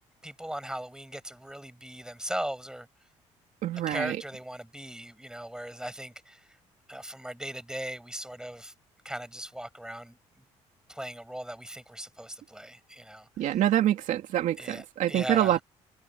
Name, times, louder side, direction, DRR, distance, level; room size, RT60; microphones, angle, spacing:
voice 1, 0.2-2.9 3.9-6.6 6.9-8.7 9.0-10.2 10.9-13.6 14.6-15.6, right 1 dB, 5° right, 6.6 m, -38 dB
voice 2, 3.6-4.2 13.4-15.6, right 12 dB, 70° right, 2.8 m, -26 dB
supercardioid pair, 75°, 13 cm